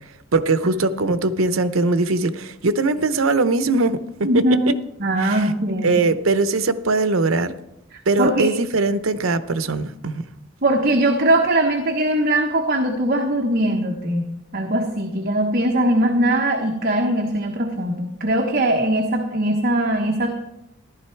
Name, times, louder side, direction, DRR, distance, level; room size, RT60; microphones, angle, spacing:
voice 1, 0.3-4.7 5.2-5.5 5.8-7.5 8.1-10.2, right 3 dB, 80° right, 0.8 m, -21 dB
voice 2, 4.2-4.7 5.0-6.0 7.9-8.5 10.6-20.3, right 1 dB, 45° right, 1.2 m, -21 dB
14.5 x 11.5 x 4.6 m
head